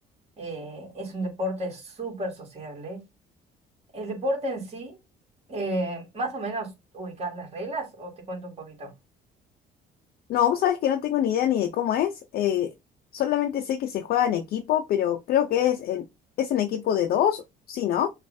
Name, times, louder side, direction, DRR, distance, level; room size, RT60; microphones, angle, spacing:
voice 1, 0.4-3.0 3.9-5.0 5.5-8.9, right 1 dB, 40° right, 2.2 m, -32 dB
voice 2, 10.3-12.7 13.1-16.0 16.4-17.4 17.7-18.1, left 10 dB, 65° left, 0.5 m, -24 dB
6.4 x 2.4 x 2.7 m
cardioid pair, 110°, 17 cm